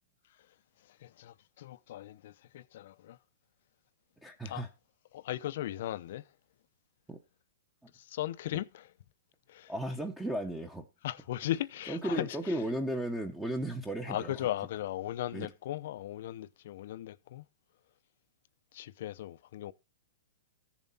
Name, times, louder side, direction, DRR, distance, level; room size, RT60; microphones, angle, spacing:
voice 1, 0.9-3.2 4.4-4.6 5.1-6.3 7.9-8.9 9.5-9.7 11.0-12.6 14.1-17.4 18.7-19.7, left 13 dB, 55° left, 0.7 m, -37 dB
voice 2, 4.2-4.7 7.1-7.2 9.7-10.8 11.9-14.3 15.3-15.5, right 1 dB, 5° right, 1.0 m, -35 dB
14.5 x 7.3 x 4.1 m
hypercardioid pair, 160°, 0 cm